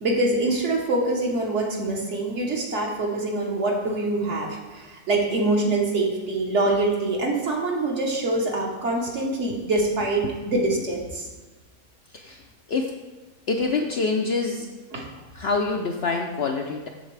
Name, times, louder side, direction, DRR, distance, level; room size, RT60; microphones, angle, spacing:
voice 1, 0.0-11.3 14.9-15.1, right 2 dB, 55° right, -1 dB, 1.4 m, -25 dB
voice 2, 12.1-12.4 12.7-13.0 13.5-14.7 15.3-16.9, left 4 dB, 60° left, 2 dB, 0.7 m, -26 dB
8.0 x 6.7 x 3.3 m, 1.2 s
omnidirectional pair, 1.5 m